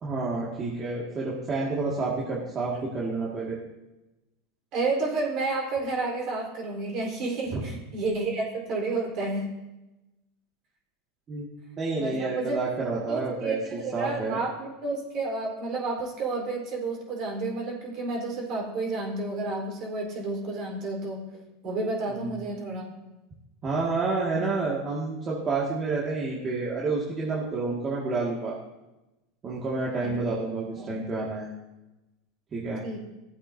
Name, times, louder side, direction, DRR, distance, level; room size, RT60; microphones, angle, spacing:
voice 1, 0.0-3.6 7.5-7.6 11.3-11.5 11.8-14.4 22.1-22.4 23.6-28.6 29.4-31.5 32.5-32.9, right 3 dB, 30° right, -5 dB, 2.1 m, -29 dB
voice 2, 4.7-9.5 12.0-12.6 13.1-21.2 21.6-22.9 30.0-30.1 30.7-30.9 32.8-33.0, right 3 dB, 50° right, -1 dB, 4.3 m, -30 dB
16.5 x 8.3 x 2.8 m, 0.99 s
hypercardioid pair, 105°, 0 cm